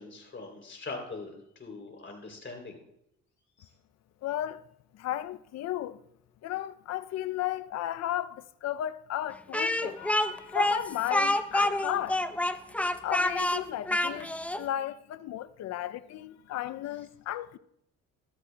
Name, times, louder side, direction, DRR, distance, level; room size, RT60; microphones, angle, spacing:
voice 1, 0.0-2.8 3.6-3.7, left 3 dB, 40° left, 3.0 m, -42 dB
voice 2, 4.2-4.6 4.9-6.0 6.4-12.3 13.0-17.6, left 13 dB, 60° left, 0.5 m, -34 dB
Speech, 9.5-14.6, left 1 dB, 5° left, 0.5 m, -27 dB
13.0 x 13.0 x 2.2 m
cardioid pair, 90°, 30 cm